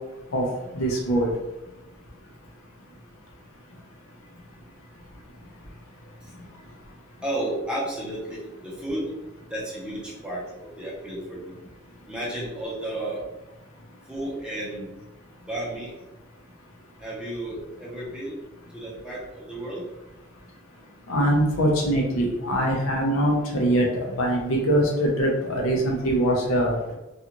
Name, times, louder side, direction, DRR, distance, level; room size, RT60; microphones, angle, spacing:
voice 1, 0.7-1.3 21.1-23.9 24.2-27.0, right 1 dB, 75° left, -1 dB, 0.6 m, -23 dB
voice 2, 7.2-9.1 9.5-11.5 12.1-13.2 14.1-14.9 15.4-15.9 17.0-18.4 18.7-19.8, right 1 dB, 5° right, -6 dB, 0.8 m, -32 dB
2.5 x 2.4 x 2.9 m, 0.99 s
head